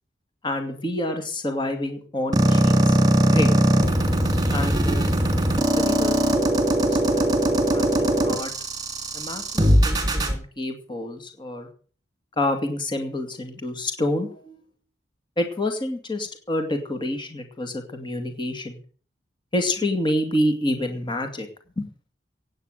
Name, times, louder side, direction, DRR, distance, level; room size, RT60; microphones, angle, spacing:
voice 1, 0.4-3.0 3.3-3.5 4.5-5.1 5.7-6.2 6.8-8.5 9.1-11.7 12.4-14.6 15.4-18.8 19.5-21.5 21.8-21.9, left 1 dB, 30° left, 5 dB, 2.4 m, -28 dB
sound 1, 2.3-10.3, right 1 dB, 25° right, 3.0 m, -20 dB
17.0 x 9.2 x 6.7 m, 0.43 s
head